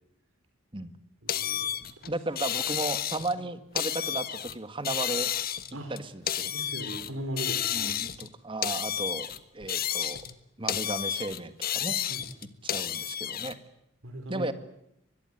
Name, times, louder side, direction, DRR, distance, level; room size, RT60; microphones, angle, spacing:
voice 1, 1.2-1.7 2.0-2.1 5.7-5.9 6.5-8.0 12.1-12.2 14.0-14.5, right 1 dB, 75° right, 4 dB, 4.8 m, -38 dB
sound 1, 1.3-3.4 3.7-4.5 4.8-7.1 7.4-8.3 8.6-10.4 10.7-13.5, left 10 dB, 45° left, 1.4 m, -31 dB
voice 2, 2.1-5.3 5.9-6.5 7.7-9.3 9.5-10.2 10.6-12.0 12.6-13.6 14.3-14.5, right 2 dB, 25° right, 11 dB, 1.9 m, -34 dB
24.0 x 21.5 x 9.4 m, 0.81 s
head